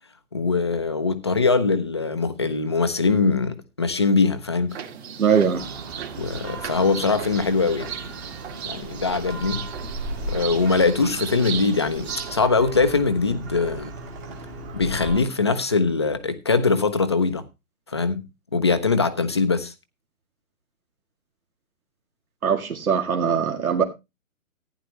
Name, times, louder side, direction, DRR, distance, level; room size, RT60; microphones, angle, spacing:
voice 1, 0.3-4.8 6.2-7.9 8.6-9.7 10.3-13.9 14.7-17.4 17.9-18.2 18.5-19.7, left 4 dB, 20° left, 0.6 m, -22 dB
sound 1, 4.7-12.5, right 7 dB, 45° right, 2.2 m, -36 dB
voice 2, 5.2-5.6 22.4-23.8, right 7 dB, 75° right, 2.1 m, -21 dB
Church bell, 5.5-15.2, right 2 dB, 10° right, 1.1 m, -36 dB
14.5 x 10.0 x 3.0 m
hypercardioid pair, 160°, 43 cm